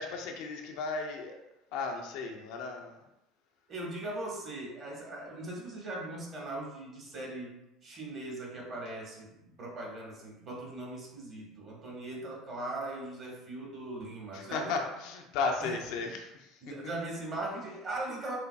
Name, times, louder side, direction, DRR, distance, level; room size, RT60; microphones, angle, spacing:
voice 1, 0.0-1.3 1.7-3.0 14.3-16.3, left 4 dB, 60° left, 3 dB, 0.5 m, -34 dB
voice 2, 3.7-9.3 9.6-14.8 15.6-15.8 16.6-18.4, right 2 dB, 40° right, -2 dB, 1.4 m, -39 dB
6.1 x 2.5 x 2.3 m, 0.91 s
figure-of-eight pair, 65°, 0 cm